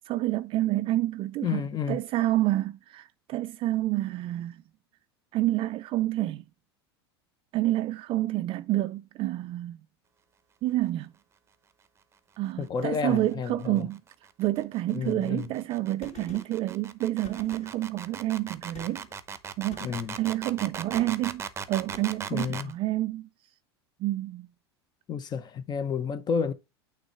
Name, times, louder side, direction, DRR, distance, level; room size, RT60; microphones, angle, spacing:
voice 1, 0.1-4.6 5.3-6.4 7.5-9.8 10.6-11.1 12.4-14.0 14.4-19.1 19.6-19.9 20.2-21.4 21.7-23.3 24.0-24.5, right 15 dB, 40° right, 0.4 m, -28 dB
voice 2, 1.4-2.0 12.6-13.9 14.9-15.5 19.8-20.2 22.3-22.7 25.1-26.5, left 6 dB, 30° left, 0.8 m, -30 dB
sound 1, 13.5-22.7, right 6 dB, 20° right, 0.8 m, -39 dB
Gunshot gunfire, 16.0-16.7 17.2-18.0 18.7-19.2 19.7-20.2 20.9-21.4 21.9-22.3, left 6 dB, 50° left, 2.9 m, -49 dB
8.9 x 3.2 x 4.5 m
hypercardioid pair, 90°, 14 cm